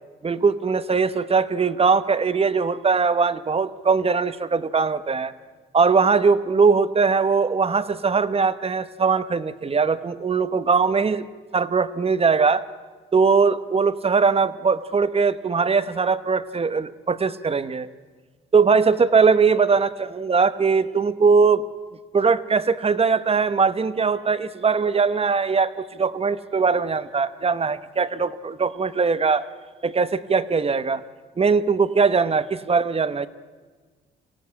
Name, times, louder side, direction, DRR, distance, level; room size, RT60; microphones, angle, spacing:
voice 1, 0.2-5.3 5.7-11.2 11.5-12.6 13.1-17.9 18.5-21.6 22.1-29.4 29.8-31.0 31.4-33.3, right 5 dB, 30° right, 13 dB, 1.0 m, -20 dB
24.0 x 16.5 x 9.8 m, 1.4 s
cardioid pair, 90°, 20 cm